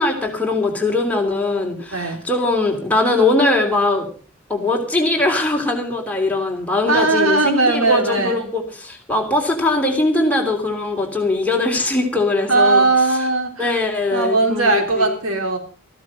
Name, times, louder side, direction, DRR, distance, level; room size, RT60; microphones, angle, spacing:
voice 1, 0.0-4.1 4.5-13.2 13.6-15.2, left 2 dB, 5° left, 1 dB, 3.2 m, -21 dB
voice 2, 1.9-2.2 6.9-8.4 12.5-13.7 14.1-15.6, right 3 dB, 90° right, 5 dB, 3.3 m, -18 dB
14.5 x 12.5 x 5.4 m, 0.39 s
head